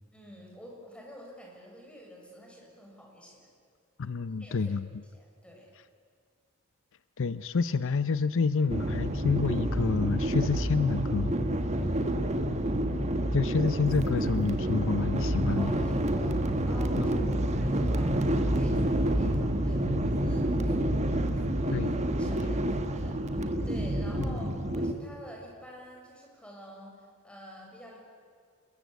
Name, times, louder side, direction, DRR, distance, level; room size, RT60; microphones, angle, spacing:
voice 1, 0.1-3.5 4.4-4.7 5.1-5.7 11.8-12.2 15.5-28.0, equal, 5° left, -2 dB, 6.8 m, -48 dB
voice 2, 4.0-4.9 7.2-11.3 13.3-15.7 17.0-17.2 19.9-20.0 21.7-21.9 24.2-24.4, left 4 dB, 60° left, 14 dB, 0.6 m, -28 dB
sound 1, 8.7-24.9, right 1 dB, 30° right, 1.6 m, -28 dB
sound 2, 23.9-25.0, equal, 30° left, 7.2 m, -52 dB
27.5 x 22.0 x 8.2 m, 2.1 s
head